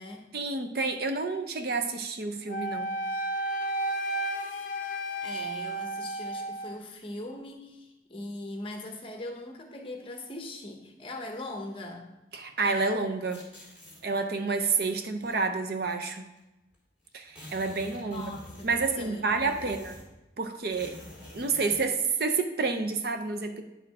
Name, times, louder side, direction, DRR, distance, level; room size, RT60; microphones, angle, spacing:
voice 1, 0.3-2.9 12.3-13.4 14.0-16.3 17.1-20.0 20.4-21.0 21.3-23.6, right 4 dB, 55° right, 6 dB, 0.6 m, -29 dB
Wind instrument woodwind instrument, 2.5-6.8, right 1 dB, 45° left, 0.4 m, -32 dB
voice 2, 5.2-12.1 18.0-18.7 19.0-19.8, left 1 dB, 30° left, 3 dB, 0.9 m, -40 dB
sound 1, 13.3-14.0 14.6-15.4 16.4-16.5 16.7-16.8 17.0-20.2 20.7-21.9, left 1 dB, 10° right, 2.0 m, -48 dB
9.6 x 4.7 x 3.5 m, 1.0 s
head